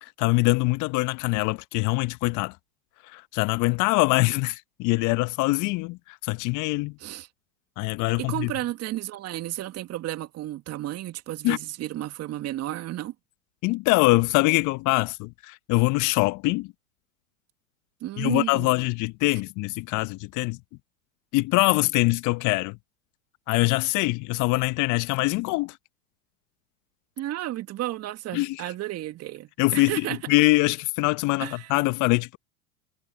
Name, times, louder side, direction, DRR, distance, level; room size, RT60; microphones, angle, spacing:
voice 1, 0.0-2.5 3.1-7.0 7.8-8.5 11.4-11.6 13.6-16.7 18.2-20.6 21.3-22.8 23.5-25.8 28.3-28.6 29.6-32.4, left 23 dB, 45° left, 1.6 m, -23 dB
voice 2, 8.2-13.1 18.0-18.8 27.2-30.2 31.4-31.7, right 14 dB, 35° right, 2.4 m, -32 dB
hypercardioid pair, 90°, 43 cm